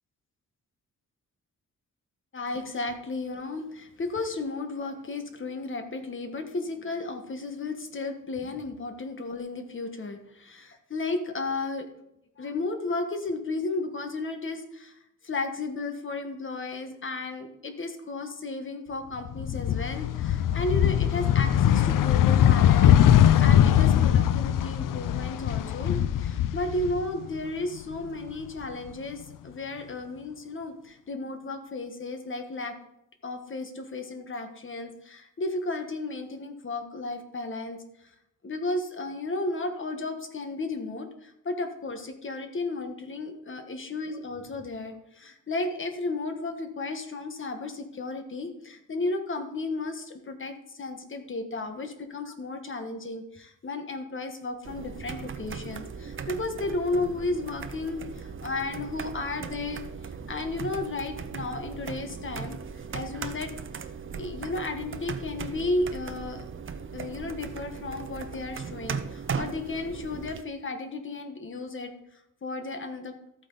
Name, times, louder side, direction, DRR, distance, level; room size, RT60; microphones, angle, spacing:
voice 1, 2.3-11.9 12.4-14.9 15.2-32.8 33.2-38.1 38.4-59.8 60.3-63.5 63.8-66.4 66.9-73.2, left 2 dB, 40° left, 6 dB, 1.5 m, -34 dB
sound 1, 19.3-27.4 27.7-28.9, left 10 dB, 75° left, 0.6 m, -21 dB
sound 2, 54.6-70.4, right 6 dB, 40° right, 0.7 m, -38 dB
13.5 x 8.7 x 4.0 m, 0.83 s
wide cardioid pair, 135°, 32 cm